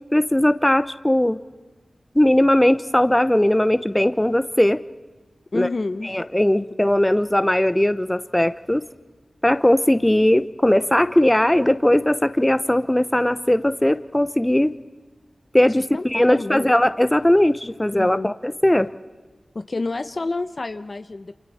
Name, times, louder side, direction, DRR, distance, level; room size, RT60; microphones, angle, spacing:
voice 1, 0.1-1.4 2.1-4.8 5.5-5.7 6.0-8.8 9.4-14.7 15.5-18.9, left 1 dB, 15° left, 12 dB, 0.8 m, -19 dB
voice 2, 5.5-6.2 15.8-16.8 17.9-18.3 19.5-21.3, left 3 dB, 50° left, 9 dB, 0.8 m, -29 dB
29.0 x 27.0 x 4.3 m, 1.3 s
wide cardioid pair, 65°, 0 cm